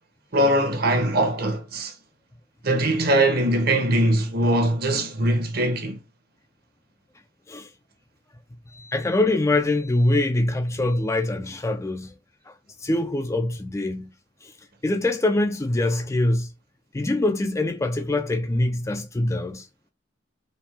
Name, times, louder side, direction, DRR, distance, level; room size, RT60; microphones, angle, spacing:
voice 1, 0.3-1.9 2.6-6.0, right 1 dB, 55° right, 1.1 m, -21 dB
voice 2, 8.7-12.1 12.8-14.1 14.8-16.5 16.9-19.7, left 2 dB, 15° left, 0.4 m, -24 dB
4.4 x 3.3 x 3.4 m
head